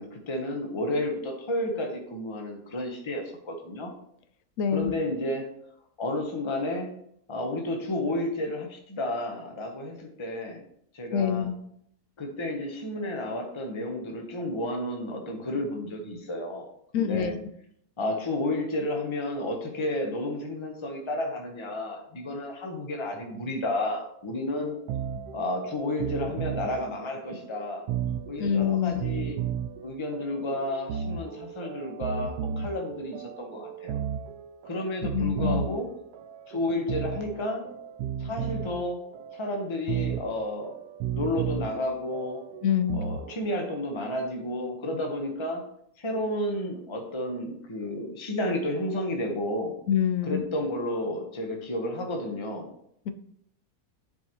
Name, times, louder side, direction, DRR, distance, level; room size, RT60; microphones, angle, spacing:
voice 1, 0.0-3.9 4.7-5.5 6.0-6.9 7.3-10.6 10.9-11.5 12.2-16.7 16.9-17.3 18.0-24.7 25.3-27.9 28.3-29.4 29.8-34.0 34.6-35.9 36.5-37.7 38.2-39.0 39.3-40.7 41.1-42.4 42.9-45.6 46.0-49.7 50.2-52.7, left 1 dB, 20° left, 2 dB, 0.9 m, -31 dB
voice 2, 4.6-4.9 11.1-11.6 16.9-17.4 28.4-29.0 35.1-35.6 42.6-43.1 49.9-50.5 53.1-53.2, left 8 dB, 70° left, 10 dB, 0.9 m, -26 dB
sound 1, 24.6-43.8, right 8 dB, 85° right, 1.1 m, -35 dB
10.0 x 4.8 x 3.0 m, 0.70 s
omnidirectional pair, 1.6 m